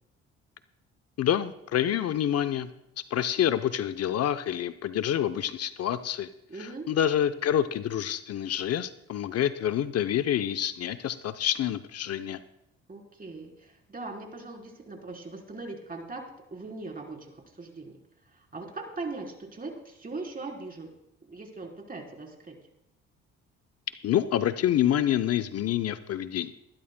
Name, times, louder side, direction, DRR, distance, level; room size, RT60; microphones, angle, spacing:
voice 1, 1.2-2.7 3.1-6.3 6.6-12.4 24.0-26.5, left 10 dB, 55° left, 11 dB, 0.7 m, -27 dB
voice 2, 6.5-6.9 12.9-16.2 16.5-18.0 18.3-20.9 21.2-22.5, right 3 dB, 30° right, 1 dB, 3.8 m, -40 dB
22.0 x 11.5 x 2.2 m, 0.83 s
hypercardioid pair, 55°, 30 cm